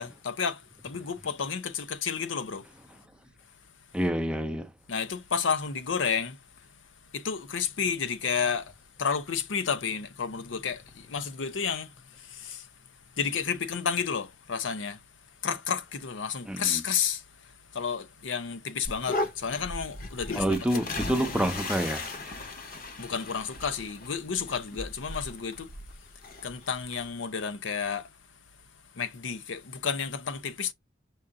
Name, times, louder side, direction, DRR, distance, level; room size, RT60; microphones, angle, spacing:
voice 1, 0.0-2.7 4.9-6.4 7.1-8.7 9.0-11.9 12.2-12.7 13.2-15.0 15.4-17.2 17.7-20.8 23.0-25.7 26.4-28.1 29.0-30.7, left 6 dB, 85° left, 0.7 m, -31 dB
voice 2, 3.9-4.7 16.5-16.8 20.3-22.1, right 1 dB, 5° right, 0.6 m, -28 dB
sound 1, 18.8-27.1, left 2 dB, 50° left, 1.0 m, -37 dB
5.5 x 2.6 x 3.6 m
head